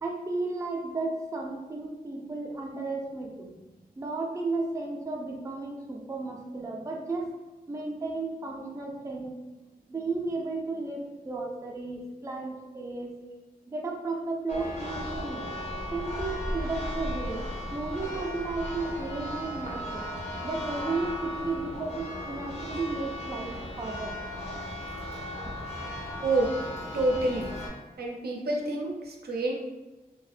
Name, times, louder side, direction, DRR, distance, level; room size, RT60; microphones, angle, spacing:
voice 1, 0.0-3.5 4.0-7.3 7.7-9.4 9.9-13.1 13.7-15.5 15.9-17.4 17.7-20.1 20.4-24.2, right 3 dB, 20° right, -1 dB, 0.3 m, -34 dB
Church bell, 14.5-27.7, left 1 dB, 45° left, 0.5 m, -36 dB
voice 2, 26.2-26.5 26.9-27.5 28.0-29.5, right 2 dB, 85° right, -1 dB, 0.4 m, -27 dB
2.4 x 2.1 x 2.4 m, 1.1 s
wide cardioid pair, 95°, 16 cm